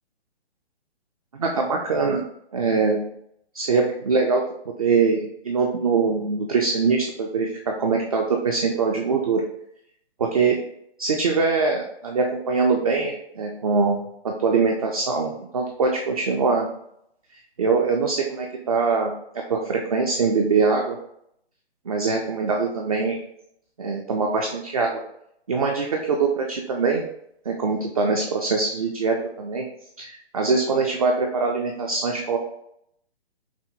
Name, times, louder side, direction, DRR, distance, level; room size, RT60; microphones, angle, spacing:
voice 1, 1.3-2.2 2.5-3.0 3.5-9.5 10.2-10.6 11.0-16.7 17.6-19.1 19.5-21.0 21.9-23.2 23.8-25.0 25.5-27.0 27.5-29.6 30.0-32.4, right 4 dB, 35° right, 1 dB, 0.4 m, -23 dB
5.9 x 2.1 x 2.6 m, 0.73 s
figure-of-eight pair, 135°, 32 cm